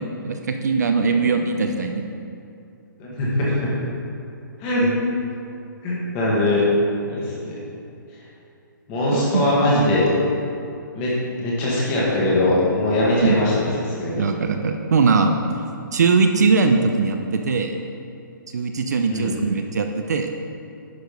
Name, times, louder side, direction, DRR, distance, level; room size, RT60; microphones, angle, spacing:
voice 1, 0.0-2.0 9.1-10.0 13.2-13.4 14.2-15.4 15.9-17.7 18.5-20.3, right 4 dB, 50° right, 5 dB, 0.6 m, -21 dB
voice 2, 3.0-3.7 4.6-4.9 5.8-6.6 7.1-7.6 8.9-10.1 10.9-13.5 13.8-14.2 19.1-19.3, left 1 dB, 15° left, -6 dB, 1.5 m, -21 dB
10.5 x 5.1 x 5.2 m, 2.6 s
hypercardioid pair, 175°, 11 cm